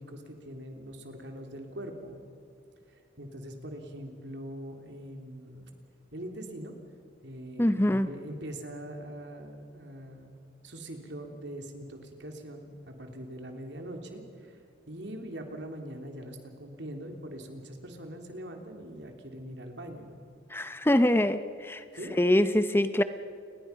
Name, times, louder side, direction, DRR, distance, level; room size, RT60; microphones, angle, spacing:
voice 1, 0.0-2.2 2.9-5.7 6.1-6.7 7.2-10.4 10.6-14.6 14.9-20.1 21.9-22.2, right 1 dB, 75° right, 4 dB, 3.0 m, -42 dB
voice 2, 7.6-8.1 20.5-21.8 22.2-23.0, left 1 dB, 10° left, 11 dB, 0.6 m, -24 dB
29.5 x 20.0 x 5.7 m, 2.5 s
head